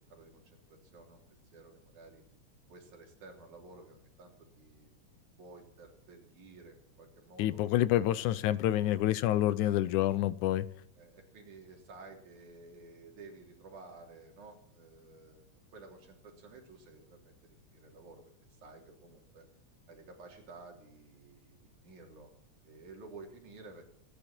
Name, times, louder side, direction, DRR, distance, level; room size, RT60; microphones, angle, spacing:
voice 1, 0.0-2.2 2.7-8.1 8.7-9.0 9.6-9.8 10.9-15.4 15.7-19.4 19.9-22.3 22.6-23.9, right 3 dB, 80° right, 5.0 m, -53 dB
voice 2, 7.4-10.7, left 13 dB, 85° left, 2.2 m, -28 dB
26.5 x 10.5 x 4.5 m
omnidirectional pair, 3.4 m